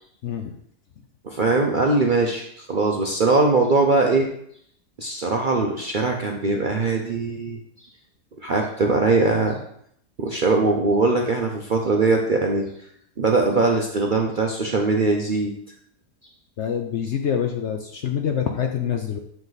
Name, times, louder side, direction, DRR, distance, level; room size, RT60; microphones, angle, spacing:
voice 1, 1.2-4.3 5.0-7.6 8.4-9.6 10.2-12.7 13.2-15.5, right 3 dB, 50° right, 1 dB, 0.6 m, -21 dB
voice 2, 16.6-19.2, left 8 dB, 60° left, 4 dB, 0.8 m, -25 dB
7.5 x 4.9 x 4.0 m, 0.68 s
omnidirectional pair, 1.6 m